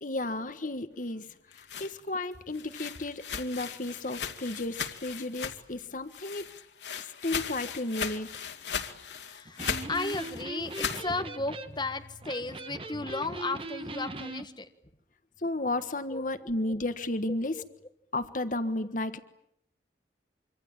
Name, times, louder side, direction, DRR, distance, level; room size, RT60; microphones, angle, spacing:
voice 1, 0.0-1.3 1.6-6.5 7.0-8.4 15.4-17.6 18.1-19.2, left 2 dB, 50° left, 10 dB, 1.5 m, -33 dB
sound 1, 1.3-5.8 6.1-11.1, left 7 dB, 85° left, 2.5 m, -37 dB
voice 2, 9.3-14.7 16.1-16.3 16.6-16.8 17.3-17.6, left 3 dB, 25° left, 7 dB, 1.5 m, -35 dB
Electric guitar, 9.4-14.5, right 2 dB, 30° right, 1.5 m, -40 dB
25.5 x 25.5 x 8.9 m, 0.74 s
head